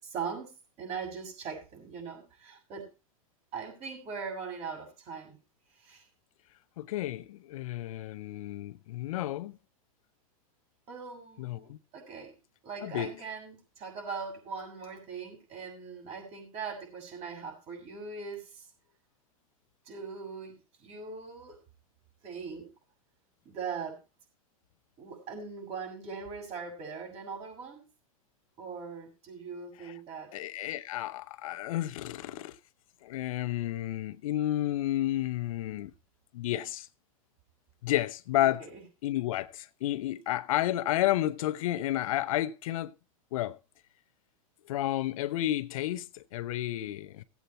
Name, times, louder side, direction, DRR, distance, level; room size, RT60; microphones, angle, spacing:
voice 1, 0.0-0.5 0.8-2.9 3.5-5.4 5.8-6.1 10.9-12.3 12.6-18.7 19.9-20.5 20.8-21.6 22.2-22.6 23.4-23.9 25.0-27.8 28.6-30.3 38.4-38.8, right 5 dB, 35° right, 6.5 m, -40 dB
voice 2, 6.8-9.6 11.4-11.8 12.8-13.1 29.8-29.9 30.3-32.6 33.0-35.9 36.3-36.9 37.8-38.7 39.0-42.9 43.3-43.6 44.7-47.2, left 14 dB, 70° left, 0.8 m, -31 dB
16.5 x 8.2 x 4.2 m
supercardioid pair, 135°, 18 cm